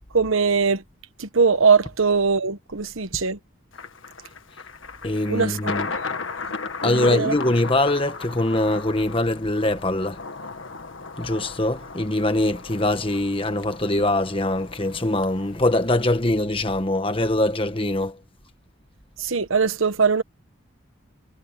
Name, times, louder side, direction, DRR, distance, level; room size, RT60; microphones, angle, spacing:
voice 1, 0.1-0.8 1.2-3.4 5.3-5.7 6.8-7.3 19.2-20.2, right 5 dB, 75° right, 1.2 m, -21 dB
Thunder, 3.7-16.0, left 4 dB, 65° left, 1.8 m, -36 dB
voice 2, 5.0-5.9 6.8-10.2 11.2-18.2, left 1 dB, 25° left, 1.4 m, -23 dB
head